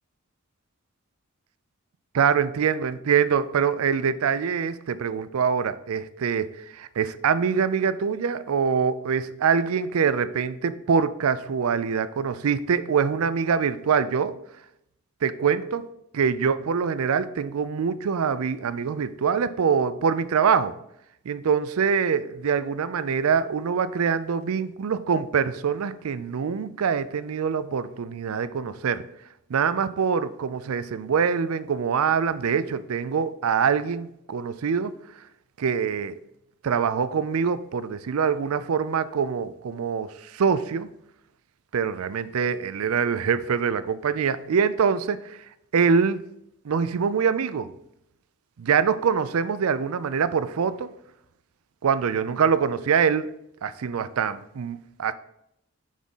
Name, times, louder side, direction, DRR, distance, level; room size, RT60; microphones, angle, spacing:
voice 1, 2.1-6.5 6.8-14.3 15.2-15.9 16.1-20.7 21.3-29.0 29.5-34.9 35.6-36.2 36.6-40.9 41.7-45.4 45.7-46.2 46.6-47.7 48.6-50.9 51.8-53.3 53.6-55.1, right 6 dB, 80° right, 14 dB, 0.4 m, -24 dB
6.3 x 3.6 x 5.5 m, 0.78 s
head